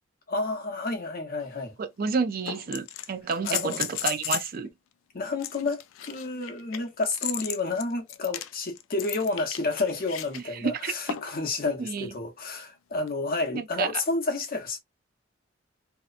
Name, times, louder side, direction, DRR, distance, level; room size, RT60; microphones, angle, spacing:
voice 1, 0.3-1.7 3.4-3.8 5.1-14.8, left 3 dB, 50° left, 0.8 m, -30 dB
sound 1, 1.4-1.5 2.5-4.6 5.4-10.4 11.1-11.4 13.1-13.2, left 12 dB, 80° left, 0.3 m, -34 dB
voice 2, 1.8-4.7 10.6-10.9 11.8-12.1 13.5-13.9, right 5 dB, 50° right, 0.4 m, -29 dB
2.8 x 2.0 x 2.4 m
head